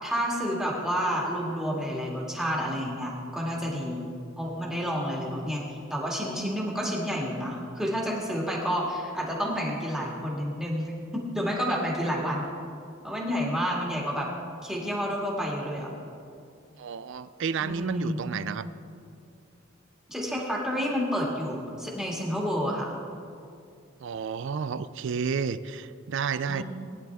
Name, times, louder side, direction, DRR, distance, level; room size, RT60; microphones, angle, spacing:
voice 1, 0.0-5.6 5.9-12.5 13.0-14.3 14.6-15.9 17.6-18.2 20.1-22.9 26.5-26.6, equal, 5° right, -4 dB, 2.1 m, -30 dB
voice 2, 16.8-18.7 24.0-26.6, right 6 dB, 65° right, 15 dB, 0.4 m, -31 dB
19.5 x 10.0 x 3.6 m, 2.4 s
head